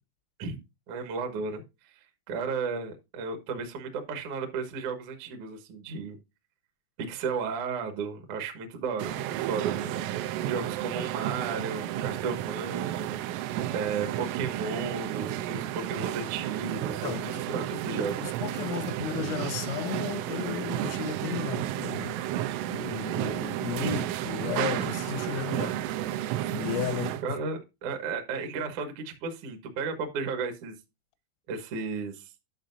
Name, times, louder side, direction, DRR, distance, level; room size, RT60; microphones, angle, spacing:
voice 1, 0.9-1.6 2.3-6.2 7.0-13.2 13.7-18.4 19.0-19.1 23.8-24.1 27.2-30.8 31.5-32.3, right 5 dB, 70° right, 1.8 m, -34 dB
sound 1, 9.0-27.2, right 12 dB, 90° right, 3.2 m, -32 dB
voice 2, 17.0-17.3 17.7-22.2 22.7-25.8 26.5-27.4, left 9 dB, 90° left, 3.6 m, -35 dB
11.5 x 6.2 x 2.6 m
omnidirectional pair, 5.7 m